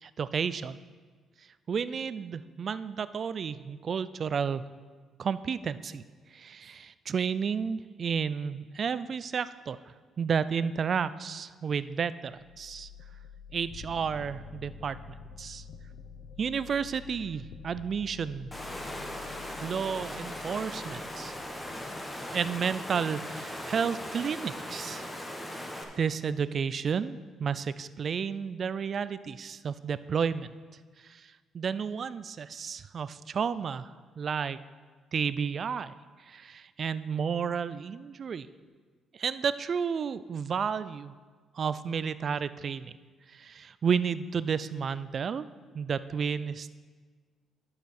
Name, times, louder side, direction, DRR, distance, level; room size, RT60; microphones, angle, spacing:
voice 1, 0.0-0.8 1.7-4.6 5.2-6.0 6.3-9.8 10.2-12.9 13.5-15.6 16.4-18.5 19.6-21.3 22.3-25.1 25.6-25.7 26.0-30.5 31.0-33.9 34.2-34.6 35.1-35.9 36.3-38.5 39.1-41.1 41.5-42.9 43.3-45.5 45.7-46.7, right 6 dB, 50° right, 15 dB, 0.3 m, -32 dB
sound 1, 12.3-24.2, left 7 dB, 80° left, 0.7 m, -50 dB
sound 2, 13.7-21.4, left 1 dB, 55° left, 1.2 m, -54 dB
Water, 18.5-25.8, left 1 dB, 15° left, 1.2 m, -39 dB
10.5 x 6.7 x 4.3 m, 1.5 s
cardioid pair, 90°, 0 cm